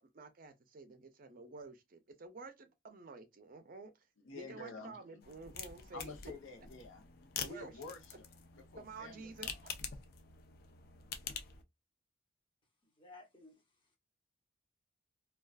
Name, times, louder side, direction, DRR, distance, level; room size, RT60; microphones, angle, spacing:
voice 1, 0.1-3.9 4.3-6.1 7.4-7.7 8.8-9.5, right 3 dB, 45° right, 0.4 m, -51 dB
voice 2, 4.2-5.2 5.9-8.3 8.5-9.7, left 3 dB, 85° left, 0.7 m, -50 dB
sound 1, 5.2-11.6, left 7 dB, 50° left, 0.4 m, -46 dB
voice 3, 12.8-14.0, left 3 dB, 25° left, 0.8 m, -58 dB
2.4 x 2.3 x 2.3 m
head